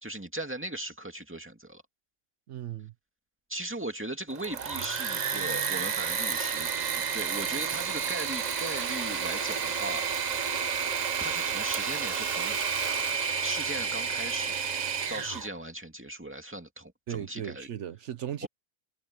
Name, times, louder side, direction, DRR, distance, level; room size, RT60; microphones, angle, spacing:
voice 1, 0.0-1.8 3.5-10.1 11.2-12.6 13.4-14.5 15.1-17.7 18.4-18.5, right 1 dB, 10° right, 2.3 m, -38 dB
voice 2, 2.5-2.9 17.1-18.5, right 10 dB, 75° right, 1.1 m, -37 dB
Engine / Mechanisms, 4.3-15.5, right 6 dB, 40° right, 0.8 m, -31 dB
omnidirectional pair, 1.2 m